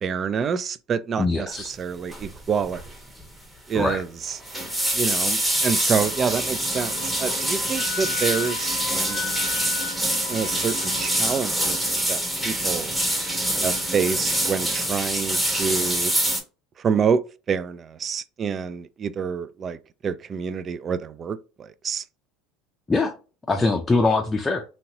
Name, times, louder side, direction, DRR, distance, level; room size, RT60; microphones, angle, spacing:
voice 1, 0.0-2.8 3.7-4.3 4.9-9.3 10.3-12.9 13.6-16.1 16.8-17.2 17.5-19.8 20.0-22.0, right 6 dB, 35° right, 0.3 m, -27 dB
voice 2, 1.2-1.7 3.7-4.0 22.9-23.1 23.5-24.6, left 3 dB, 15° left, 0.5 m, -22 dB
sound 1, 2.1-2.3 2.6-2.9 3.2-3.3 4.2-16.4, right 1 dB, 10° right, 1.1 m, -25 dB
Wind instrument woodwind instrument, 5.5-11.3, left 9 dB, 75° left, 0.5 m, -36 dB
2.8 x 2.8 x 2.7 m
supercardioid pair, 100°, 0 cm